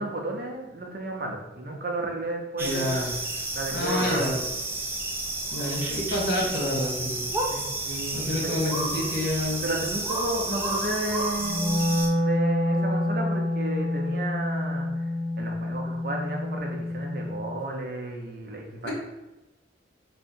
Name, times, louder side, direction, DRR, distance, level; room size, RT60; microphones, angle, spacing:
voice 1, 0.0-3.1 3.5-4.3 7.5-8.8 9.6-14.9 15.4-18.9, right 1 dB, 50° right, 0 dB, 0.6 m, -32 dB
voice 2, 2.6-3.1 3.7-4.4 5.5-7.3 8.1-9.8 18.8-18.9, left 1 dB, 65° left, -2 dB, 1.1 m, -28 dB
sound 1, 2.6-12.1, right 2 dB, 10° right, 0.4 m, -31 dB
Wind instrument woodwind instrument, 11.4-17.6, left 1 dB, 45° left, 0.6 m, -27 dB
3.6 x 2.1 x 4.3 m, 1.0 s
head